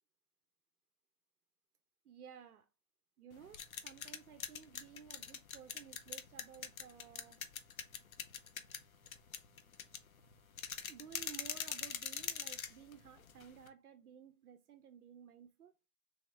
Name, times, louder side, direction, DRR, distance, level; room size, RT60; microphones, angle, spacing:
voice 1, 2.0-2.7 3.2-7.4 10.9-15.7, right 8 dB, 85° right, 0.7 m, -55 dB
sound 1, 3.3-13.7, left 7 dB, 70° left, 0.7 m, -44 dB
3.5 x 3.5 x 3.2 m
hypercardioid pair, 170°, 44 cm